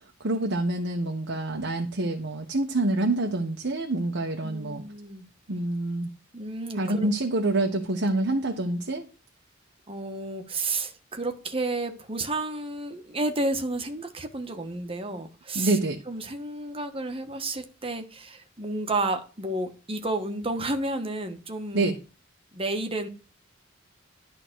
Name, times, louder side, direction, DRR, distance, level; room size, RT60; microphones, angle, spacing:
voice 1, 0.2-4.8 5.5-6.1 6.8-9.1 15.5-16.0 21.7-22.0, right 2 dB, 60° right, 3 dB, 1.2 m, -26 dB
voice 2, 4.4-5.2 6.3-7.1 9.9-15.8 16.1-21.9 22.5-23.1, right 2 dB, 30° right, 6 dB, 1.4 m, -31 dB
11.5 x 3.9 x 6.2 m, 0.35 s
head